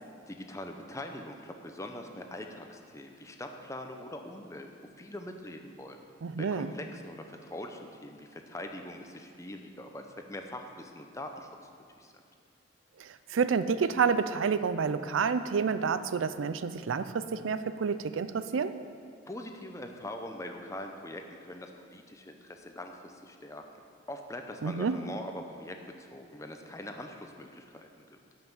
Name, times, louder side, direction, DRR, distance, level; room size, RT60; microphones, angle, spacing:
voice 1, 0.3-4.7 5.0-6.0 6.4-11.5 12.0-12.1 19.3-23.6 24.1-28.2, left 1 dB, 15° left, 4 dB, 0.7 m, -43 dB
voice 2, 6.2-6.7 13.0-18.8 24.6-25.0, right 5 dB, 90° right, 12 dB, 0.4 m, -29 dB
11.5 x 5.8 x 7.3 m, 2.3 s
head